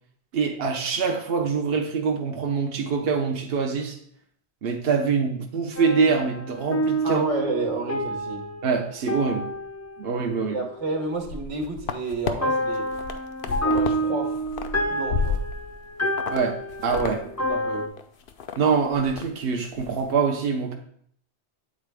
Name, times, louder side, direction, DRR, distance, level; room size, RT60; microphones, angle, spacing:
voice 1, 0.3-4.0 4.6-7.2 8.6-9.5 10.0-10.6 16.3-16.6 16.8-17.2 18.6-20.8, right 5 dB, 60° right, 3 dB, 0.9 m, -24 dB
sound 1, 5.8-11.1 12.4-17.9, right 1 dB, 20° left, 0.5 m, -29 dB
voice 2, 7.0-8.4 10.5-12.8 13.4-14.4 14.8-15.4 17.1-17.2 17.5-17.9, right 2 dB, 85° right, 1 dB, 1.5 m, -30 dB
sound 2, 11.1-12.3 12.8-14.0 14.3-15.8 16.2-16.4 16.7-17.2 17.4-17.5 18.0-18.6 18.9-19.3 19.6-19.9, left 5 dB, 60° left, 0.7 m, -31 dB
8.8 x 4.1 x 3.4 m, 0.64 s
omnidirectional pair, 1.2 m